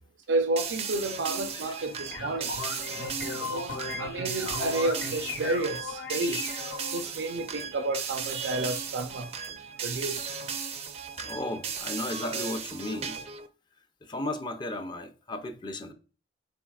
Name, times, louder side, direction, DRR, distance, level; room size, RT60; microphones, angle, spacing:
voice 1, 0.3-2.5 3.4-6.5 6.9-9.3 9.8-10.4, right 2 dB, 90° right, 0.5 m, -31 dB
sound 1, 0.6-13.5, right 6 dB, 35° right, 0.4 m, -36 dB
voice 2, 1.5-2.5 11.2-13.2 14.0-15.9, left 1 dB, 25° left, 0.4 m, -35 dB
sound 2, 1.8-7.1, left 4 dB, 65° left, 0.9 m, -37 dB
4.3 x 3.9 x 2.3 m
head